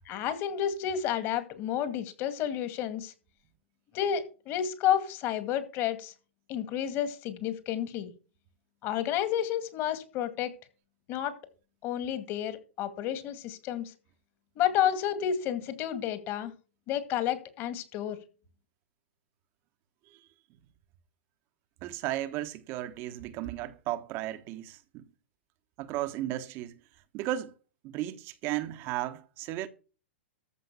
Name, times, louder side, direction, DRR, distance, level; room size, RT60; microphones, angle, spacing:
voice 1, 0.1-3.1 3.9-6.1 6.5-8.1 8.8-10.5 11.1-11.3 11.8-13.9 14.6-16.5 16.9-18.2, left 10 dB, 40° left, 2.2 m, -30 dB
voice 2, 21.8-25.0 25.8-26.8 27.1-27.5 27.8-29.7, right 14 dB, 40° right, 1.2 m, -34 dB
14.0 x 5.5 x 6.9 m
hypercardioid pair, 130°, 6 cm